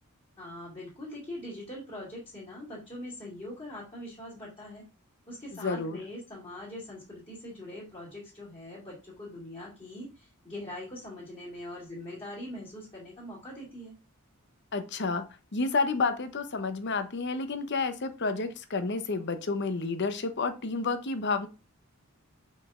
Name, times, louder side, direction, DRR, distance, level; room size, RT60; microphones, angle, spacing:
voice 1, 0.4-4.8 5.3-13.9, left 1 dB, 25° left, -8 dB, 2.5 m, -42 dB
voice 2, 5.6-6.0 14.7-15.2 15.5-21.5, left 4 dB, 50° left, 10 dB, 0.8 m, -30 dB
6.4 x 5.3 x 3.7 m, 0.31 s
head